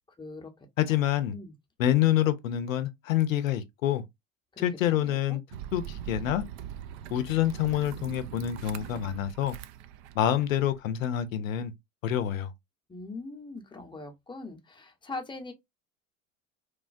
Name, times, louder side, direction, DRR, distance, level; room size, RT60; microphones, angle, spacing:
voice 1, 0.2-1.0 1.3-1.5 4.5-4.6 4.9-5.4 12.9-15.5, left 3 dB, 10° left, 0.7 m, -42 dB
voice 2, 0.8-1.3 1.8-4.0 4.6-5.4 5.7-6.4 7.1-9.6 10.2-11.7 12.0-12.5, left 11 dB, 80° left, 0.6 m, -27 dB
sound 1, 5.5-10.8, right 10 dB, 50° right, 0.4 m, -42 dB
3.1 x 2.2 x 2.5 m
hypercardioid pair, 75°, 39 cm